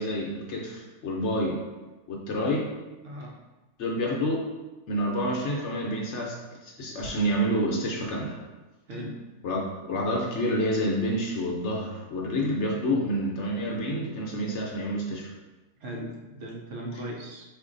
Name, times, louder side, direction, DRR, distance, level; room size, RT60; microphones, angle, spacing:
voice 1, 0.0-1.6 2.1-2.7 3.8-4.5 4.9-8.4 9.4-15.3, equal, 60° left, -1 dB, 0.9 m, -28 dB
voice 2, 3.0-3.3 8.9-9.2 15.8-17.4, right 1 dB, 65° right, -1 dB, 1.0 m, -37 dB
4.3 x 2.6 x 3.8 m, 1.1 s
omnidirectional pair, 1.5 m